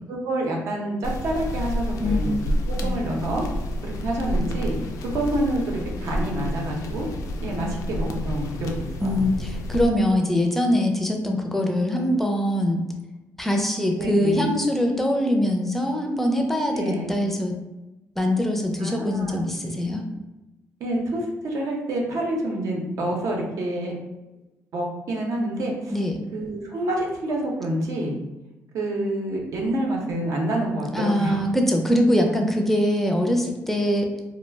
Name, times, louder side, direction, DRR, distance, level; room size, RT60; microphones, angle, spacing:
voice 1, 0.1-3.4 3.8-7.1 7.4-9.2 14.0-14.4 16.7-17.1 18.8-19.4 20.8-23.9 24.7-25.9 26.3-28.2 28.7-31.4, right 1 dB, 70° right, -1 dB, 0.7 m, -28 dB
sound 1, 1.0-9.9, equal, 70° left, 0.4 m, -29 dB
voice 2, 9.0-12.8 13.4-17.5 18.2-20.0 25.9-26.2 30.9-34.1, left 1 dB, 5° left, 2 dB, 0.4 m, -23 dB
2.3 x 2.1 x 3.2 m, 1.0 s
cardioid pair, 95°, 6 cm